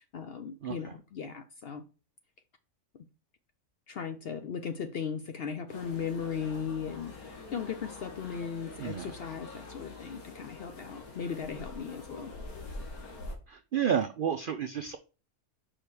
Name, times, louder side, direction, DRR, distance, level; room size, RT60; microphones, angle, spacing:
voice 1, 0.0-1.8 2.9-3.1 3.9-12.3, left 6 dB, 60° left, 0.6 m, -37 dB
voice 2, 0.6-0.9 8.8-9.1 13.5-15.0, right 8 dB, 90° right, 0.4 m, -31 dB
sound 1, 5.7-13.4, left 3 dB, 75° left, 2.1 m, -45 dB
5.5 x 5.0 x 4.7 m
omnidirectional pair, 1.6 m